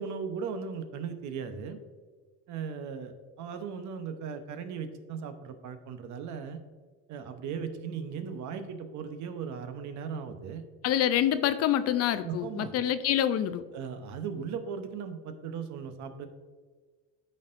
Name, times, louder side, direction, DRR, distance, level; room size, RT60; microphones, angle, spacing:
voice 1, 0.0-1.8 2.5-6.6 7.1-10.6 12.2-12.7 13.7-16.3, right 6 dB, 60° right, 8 dB, 0.9 m, -37 dB
voice 2, 10.8-13.6, left 11 dB, 50° left, 12 dB, 0.4 m, -26 dB
12.5 x 4.3 x 2.6 m, 1.4 s
supercardioid pair, 115°, 33 cm